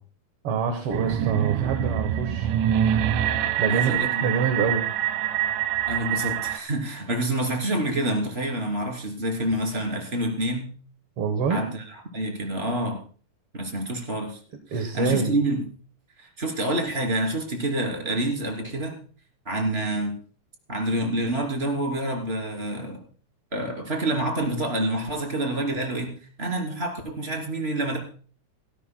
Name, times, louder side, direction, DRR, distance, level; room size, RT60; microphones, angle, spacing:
voice 1, 0.4-2.5 2.8-3.0 3.6-4.9 11.2-11.6 14.7-15.3, right 6 dB, 55° right, 6 dB, 2.0 m, -26 dB
sound 1, 0.9-6.6, right 10 dB, 90° right, 2.4 m, -25 dB
voice 2, 3.6-4.3 5.9-10.7 11.5-13.0 13.5-14.4 14.7-15.6 16.2-19.0 19.4-20.1 20.7-23.0 23.5-28.0, right 1 dB, 20° right, 2 dB, 3.2 m, -27 dB
28.5 x 13.0 x 2.2 m, 0.41 s
omnidirectional pair, 3.5 m